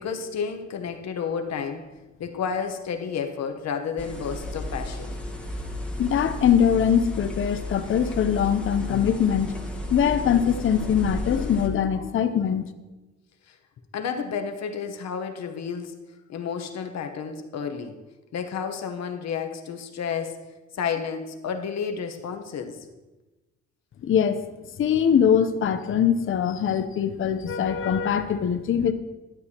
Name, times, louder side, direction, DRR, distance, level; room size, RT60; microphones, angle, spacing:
voice 1, 0.0-1.9 2.2-5.2 13.5-13.6 13.9-15.9 16.3-18.0 18.3-20.4 20.7-22.9, left 6 dB, 60° left, 6 dB, 0.9 m, -31 dB
sound 1, 4.0-11.7, left 1 dB, 5° left, 1.2 m, -33 dB
voice 2, 6.0-9.5 9.9-12.7 24.0-24.4 24.8-28.9, left 8 dB, 45° left, 9 dB, 0.6 m, -22 dB
12.5 x 7.9 x 2.8 m, 1.1 s
cardioid pair, 90°, 30 cm